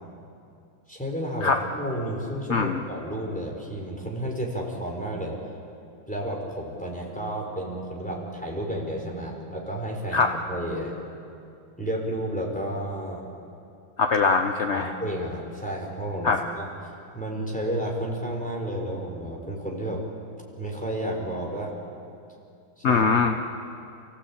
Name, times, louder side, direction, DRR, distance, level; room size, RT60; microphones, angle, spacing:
voice 1, 0.9-5.4 6.1-11.0 11.8-13.3 14.7-16.7 17.1-20.0 20.6-21.7 22.8-23.3, right 1 dB, 5° left, -1 dB, 4.4 m, -31 dB
voice 2, 2.5-2.8 10.1-10.4 14.0-14.9 16.2-16.4 22.8-23.3, left 5 dB, 50° left, 5 dB, 0.8 m, -22 dB
29.5 x 16.0 x 8.7 m, 2.5 s
omnidirectional pair, 2.2 m